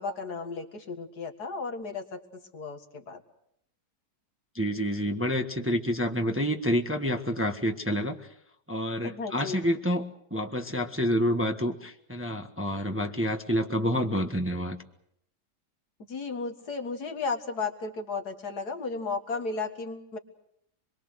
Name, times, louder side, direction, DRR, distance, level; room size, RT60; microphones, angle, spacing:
voice 1, 0.0-2.2 2.5-3.2 9.0-9.6 16.1-20.2, left 4 dB, 65° left, 5 dB, 2.4 m, -34 dB
voice 2, 4.5-8.3 8.7-14.8, equal, 10° right, 4 dB, 1.2 m, -28 dB
26.5 x 22.5 x 6.4 m, 0.73 s
omnidirectional pair, 1.9 m